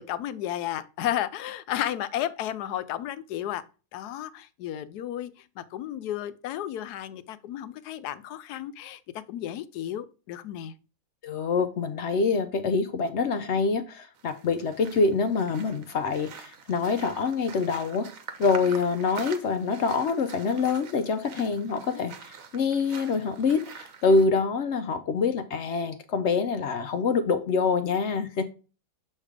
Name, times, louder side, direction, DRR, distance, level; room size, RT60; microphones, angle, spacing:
voice 1, 0.0-3.6 3.9-5.3 5.6-9.0 9.3-10.7 12.6-12.7 21.4-21.6 21.9-22.0, left 12 dB, 80° left, 1.1 m, -33 dB
voice 2, 11.2-18.1 18.4-28.4, left 4 dB, 65° left, 0.7 m, -26 dB
sound 1, 14.1-24.2, right 6 dB, 60° right, 1.2 m, -45 dB
7.2 x 3.3 x 4.9 m
omnidirectional pair, 1.7 m